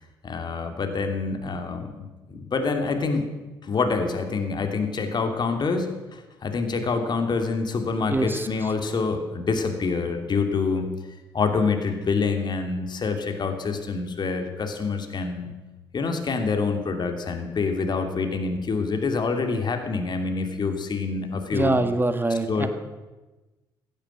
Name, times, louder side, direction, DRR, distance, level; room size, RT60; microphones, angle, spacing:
voice 1, 0.2-3.3 3.6-10.9 11.3-15.5 15.9-21.8 22.5-22.7, left 4 dB, 40° left, 5 dB, 2.8 m, -26 dB
voice 2, 8.1-8.7 21.5-22.7, right 2 dB, 20° right, 9 dB, 1.7 m, -24 dB
16.0 x 10.5 x 8.1 m, 1.2 s
hypercardioid pair, 55°, 11 cm